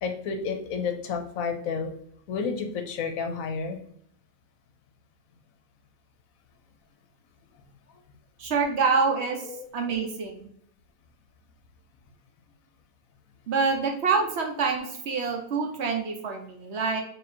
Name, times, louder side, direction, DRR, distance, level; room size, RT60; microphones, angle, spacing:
voice 1, 0.0-1.9 2.3-3.8 9.5-9.6, left 5 dB, 70° left, 5 dB, 1.0 m, -31 dB
voice 2, 8.4-9.4 9.7-10.5 13.5-17.0, right 5 dB, 55° right, 3 dB, 0.8 m, -26 dB
3.7 x 2.7 x 4.2 m, 0.65 s
omnidirectional pair, 1.5 m